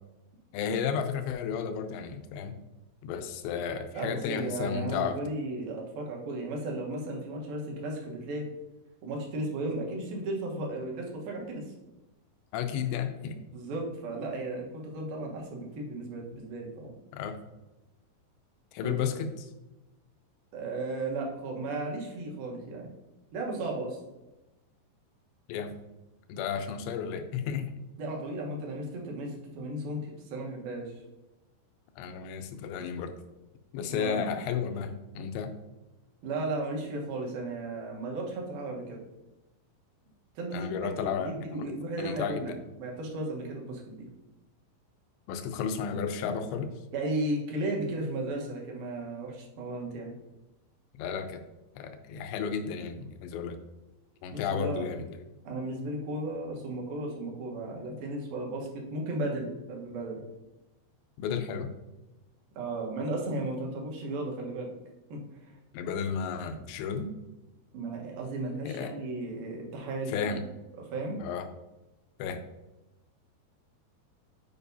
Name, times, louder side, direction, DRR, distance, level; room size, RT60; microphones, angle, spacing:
voice 1, 0.5-2.5 3.0-5.2 12.5-13.4 17.1-17.4 18.7-19.5 25.5-25.8 26.3-27.7 32.0-33.1 33.7-35.5 40.5-41.7 42.0-42.5 45.3-46.7 50.9-51.4 51.8-53.6 54.2-55.1 61.2-61.7 65.7-67.1 68.7-68.9 70.1-70.4 71.2-71.5 72.2-72.4, left 7 dB, 80° left, 7 dB, 2.7 m, -33 dB
voice 2, 3.9-8.5 9.0-11.6 13.5-16.9 18.8-19.0 20.5-22.9 23.3-24.0 28.0-30.9 33.8-34.2 36.2-39.0 40.4-42.5 42.8-44.1 46.9-50.1 54.3-54.9 55.4-60.2 62.6-64.7 65.1-65.4 67.7-70.4 70.8-71.2, right 2 dB, 65° right, -1 dB, 2.6 m, -35 dB
9.1 x 5.2 x 2.7 m, 1.0 s
omnidirectional pair, 5.3 m